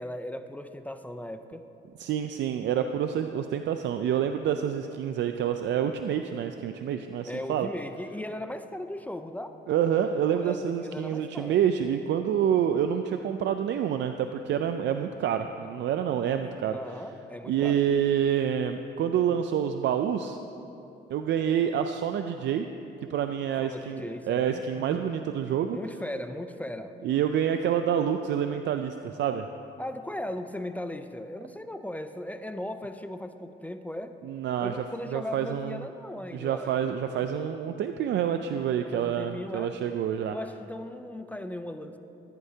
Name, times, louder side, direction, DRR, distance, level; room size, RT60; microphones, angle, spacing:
voice 1, 0.0-1.6 7.3-9.6 10.3-11.6 16.7-17.8 23.6-25.1 25.7-27.0 29.8-34.2 34.6-36.9 37.2-37.4 38.8-39.8 40.3-42.0, left 1 dB, 10° left, 9 dB, 0.4 m, -37 dB
voice 2, 2.0-7.7 9.7-16.8 17.5-20.4 21.1-22.7 23.1-25.8 27.0-29.5 34.2-34.7 35.1-35.8 36.3-40.4, right 9 dB, 65° right, 7 dB, 0.4 m, -27 dB
14.5 x 9.0 x 2.8 m, 2.9 s
cardioid pair, 90°, 20 cm